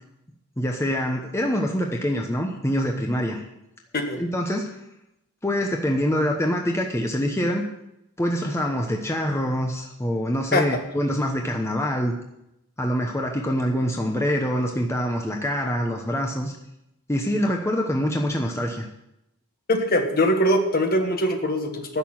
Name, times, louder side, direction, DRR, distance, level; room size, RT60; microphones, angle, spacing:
voice 1, 0.6-3.4 4.2-4.8 5.4-7.6 8.2-12.1 12.8-16.5 17.1-18.9, equal, 10° left, 2 dB, 1.0 m, -25 dB
voice 2, 19.7-22.0, left 1 dB, 45° left, 5 dB, 1.5 m, -22 dB
10.5 x 6.9 x 8.9 m, 0.85 s
head